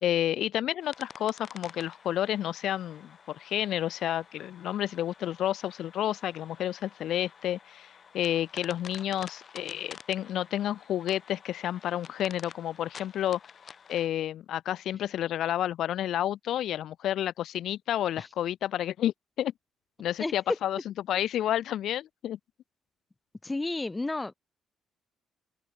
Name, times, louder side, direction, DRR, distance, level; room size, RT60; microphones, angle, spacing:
voice 1, 0.0-13.4 13.9-19.5 20.0-22.4, left 11 dB, 75° left, 0.7 m, -30 dB
sound 1, 0.8-14.1, left 7 dB, 50° left, 8.0 m, -50 dB
voice 2, 23.4-24.3, left 2 dB, 15° left, 0.7 m, -32 dB
open air
cardioid pair, 90°, 0 cm